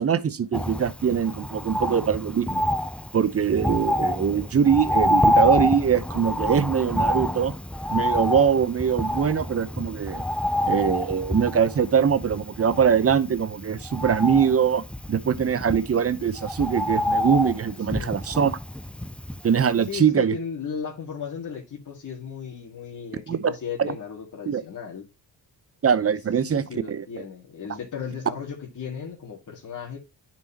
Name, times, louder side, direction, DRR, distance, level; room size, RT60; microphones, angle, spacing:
voice 1, 0.0-2.6 3.1-7.5 7.9-10.2 10.7-18.6 19.4-20.3 23.3-23.5 23.8-24.0 24.5-24.6 25.8-27.2, right 7 dB, 35° right, 0.8 m, -22 dB
Bird, 0.5-19.6 20.0-20.1, left 1 dB, 5° left, 0.5 m, -27 dB
voice 2, 19.9-25.1 26.5-30.0, left 6 dB, 45° left, 2.1 m, -35 dB
10.5 x 4.5 x 2.8 m
cardioid pair, 65°, 42 cm